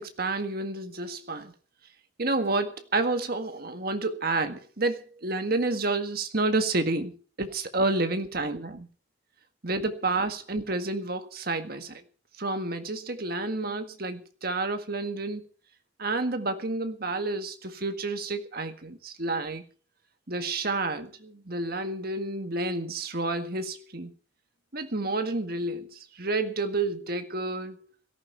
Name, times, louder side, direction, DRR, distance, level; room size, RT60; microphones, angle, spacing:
voice 1, 0.0-1.5 2.2-8.9 9.6-12.0 12.4-15.4 16.0-19.6 20.3-24.1 24.7-27.9, right 2 dB, 50° right, 1.8 m, -30 dB
17.0 x 14.0 x 4.5 m
head